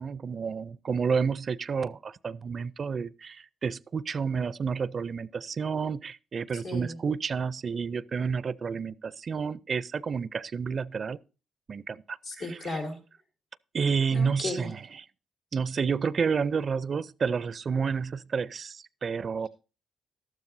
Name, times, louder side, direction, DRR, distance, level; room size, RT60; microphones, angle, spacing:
voice 1, 0.0-11.2 11.7-12.2 13.7-14.8 15.5-19.5, right 5 dB, 50° right, 0.4 m, -30 dB
voice 2, 6.5-7.0 12.2-13.0 14.1-14.7, left 2 dB, 85° left, 3.7 m, -35 dB
12.5 x 12.0 x 2.6 m
supercardioid pair, 55°, 0 cm